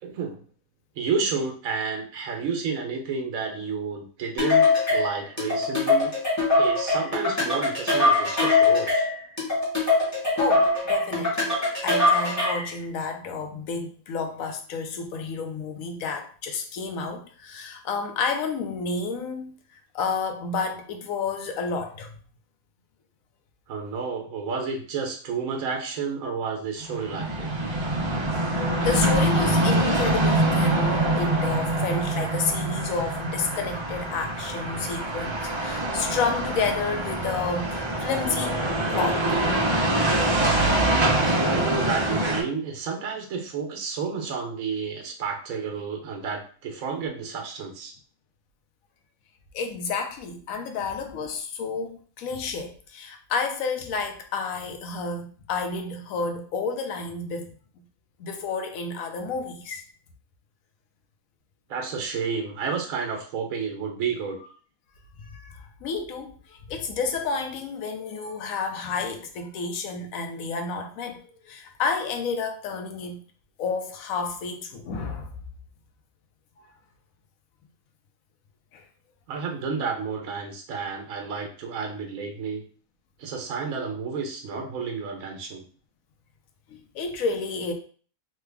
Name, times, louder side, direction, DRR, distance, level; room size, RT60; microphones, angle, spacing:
voice 1, 0.0-0.4 1.0-6.1 6.6-9.1 23.7-27.6 41.4-47.9 61.7-64.4 79.3-82.6 83.2-85.6, right 5 dB, 80° right, 2 dB, 1.1 m, -31 dB
sound 1, 4.4-12.7, left 3 dB, 15° left, 1.0 m, -22 dB
voice 2, 10.4-11.5 11.8-19.5 19.9-22.2 28.8-39.4 41.4-41.5 49.5-57.5 58.2-59.8 65.2-73.2 73.6-75.3 78.7-78.8 86.7-87.7, left 4 dB, 80° left, 5 dB, 1.0 m, -30 dB
sound 2, 26.8-42.4, right 1 dB, 35° right, 0.5 m, -24 dB
3.2 x 2.2 x 3.4 m, 0.43 s
omnidirectional pair, 1.4 m